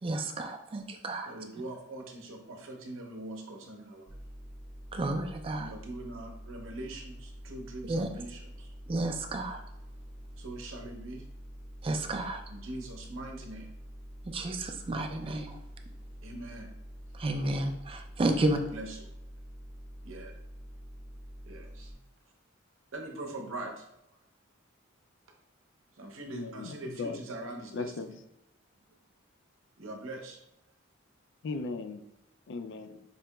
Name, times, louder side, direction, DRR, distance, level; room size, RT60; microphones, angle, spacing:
voice 1, 0.0-1.3 4.9-5.7 7.8-8.1 8.9-9.6 11.8-12.4 14.2-15.6 17.1-18.6, right 2 dB, 25° right, 5 dB, 0.4 m, -31 dB
voice 2, 1.2-4.2 5.6-8.7 10.4-11.2 12.5-13.7 16.2-16.7 18.7-19.1 20.0-20.3 21.5-21.9 22.9-23.9 26.0-28.1 29.8-30.4, right 2 dB, 75° right, 3 dB, 0.7 m, -42 dB
sound 1, 4.1-21.9, equal, 10° left, 0.6 m, -47 dB
voice 3, 26.3-27.2 27.7-28.1 31.4-32.0 32.5-33.0, left 3 dB, 60° left, 9 dB, 0.4 m, -37 dB
5.0 x 2.8 x 2.3 m, 0.85 s
head